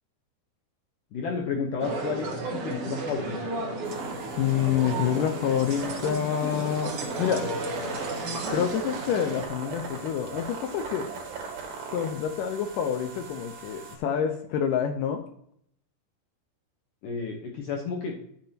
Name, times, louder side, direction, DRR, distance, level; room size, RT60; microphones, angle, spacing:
voice 1, 1.1-3.6 17.0-18.2, left 5 dB, 65° left, 0 dB, 2.2 m, -32 dB
sound 1, 1.8-9.4, right 2 dB, 65° right, 1.4 m, -33 dB
sound 2, 3.8-14.0, right 5 dB, 80° right, 4.2 m, -40 dB
voice 2, 4.4-7.5 8.5-11.1 11.9-15.3, left 8 dB, 80° left, 5 dB, 1.9 m, -27 dB
13.0 x 7.5 x 2.9 m, 0.68 s
omnidirectional pair, 4.8 m